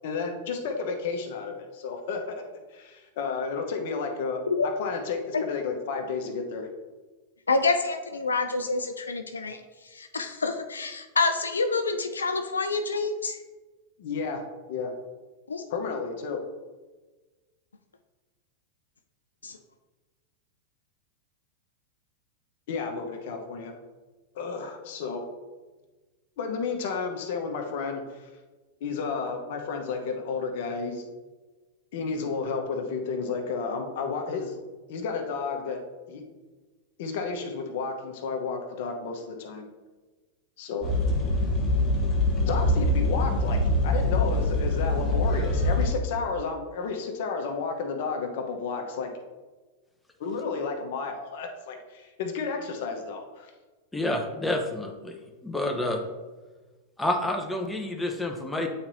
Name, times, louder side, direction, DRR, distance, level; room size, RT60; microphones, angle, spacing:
voice 1, 0.0-2.4 2.7-6.7 14.0-14.4 14.7-14.9 15.7-16.4 22.7-23.7 24.3-25.2 26.4-28.3 28.8-31.0 31.9-34.5 34.9-35.8 36.1-36.2 37.0-39.7 40.6-40.9 42.4-43.6 43.8-49.1 50.2-53.5, left 5 dB, 60° left, 4 dB, 1.0 m, -32 dB
voice 2, 7.5-9.6 9.9-13.4 15.5-15.6 19.4-19.6, left 3 dB, 90° left, 7 dB, 0.4 m, -27 dB
sound 1, 40.8-45.8, left 1 dB, 30° left, 1.4 m, -24 dB
voice 3, 53.9-55.2 55.4-56.0 57.0-58.7, left 1 dB, 10° left, 3 dB, 0.9 m, -28 dB
8.6 x 4.3 x 2.7 m, 1.3 s
hypercardioid pair, 100°, 0 cm